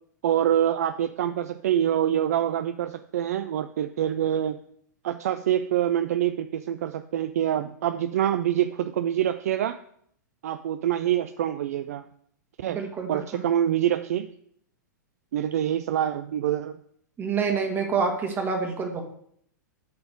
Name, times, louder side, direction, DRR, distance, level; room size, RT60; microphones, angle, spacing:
voice 1, 0.2-4.6 5.0-9.8 10.4-12.1 12.6-12.8 13.1-14.3 15.3-16.8, right 11 dB, 55° right, 11 dB, 0.4 m, -25 dB
voice 2, 12.7-13.4 17.2-19.0, right 5 dB, 20° right, 3 dB, 1.6 m, -27 dB
8.6 x 4.0 x 6.3 m, 0.65 s
figure-of-eight pair, 100°, 10 cm